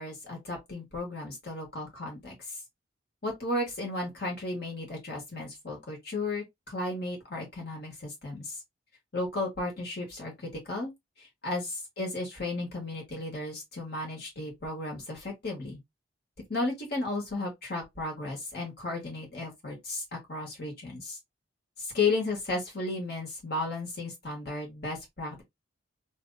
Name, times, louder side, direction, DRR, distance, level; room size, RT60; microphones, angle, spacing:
voice 1, 0.0-2.6 3.2-8.6 9.1-10.9 11.2-15.8 16.5-21.2 21.8-25.4, left 2 dB, 55° left, 1.6 m, -34 dB
2.9 x 2.6 x 2.6 m
head